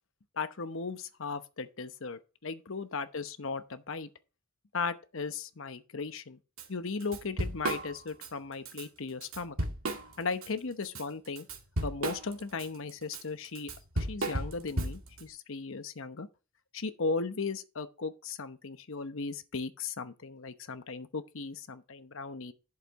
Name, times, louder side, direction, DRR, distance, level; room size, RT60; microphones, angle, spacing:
voice 1, 0.4-4.1 4.7-6.4 6.7-9.6 10.2-11.5 11.8-13.7 14.1-16.3 16.7-22.5, left 4 dB, 65° left, 0.9 m, -37 dB
Drum kit / Drum, 6.6-6.7 7.0-8.3 8.7-8.8 9.2-10.5 10.8-15.2, right 1 dB, 75° right, 2.2 m, -34 dB
11.5 x 6.7 x 3.8 m
head